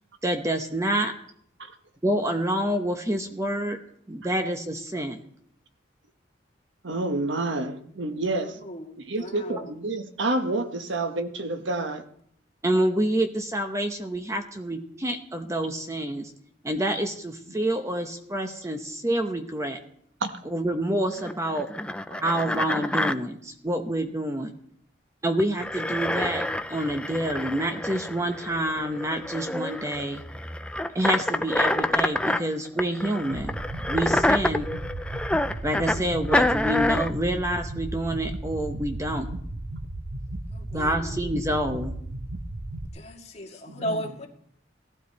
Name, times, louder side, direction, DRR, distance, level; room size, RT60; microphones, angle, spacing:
voice 1, 0.2-1.1 2.0-3.8 4.1-5.2 12.6-16.3 16.6-19.8 20.5-21.7 22.2-24.5 25.2-30.2 30.9-33.6 33.9-34.7 35.6-39.3 40.7-41.9, right 1 dB, 15° right, 5 dB, 0.9 m, -27 dB
voice 2, 6.8-8.6 9.0-12.0 20.2-20.3 22.1-22.2 43.7-44.1, right 2 dB, 85° right, 7 dB, 1.3 m, -29 dB
voice 3, 9.2-9.7 40.5-41.2 42.9-44.3, equal, 35° left, 0 dB, 2.0 m, -35 dB
sound 1, 21.2-23.1 25.4-32.4 32.8-36.0 36.3-37.1, left 1 dB, 5° left, 0.4 m, -27 dB
sound 2, 33.3-42.9, right 1 dB, 65° right, 1.2 m, -35 dB
17.5 x 12.5 x 4.2 m, 0.67 s
head